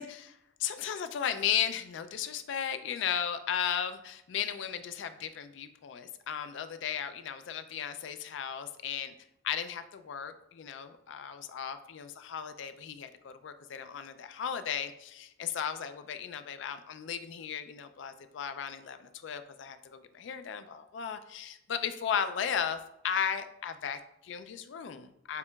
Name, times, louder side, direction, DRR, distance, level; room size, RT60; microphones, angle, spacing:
voice 1, 0.0-9.1 9.4-25.4, left 8 dB, 65° left, 10 dB, 0.3 m, -35 dB
6.6 x 2.9 x 2.3 m, 0.79 s
head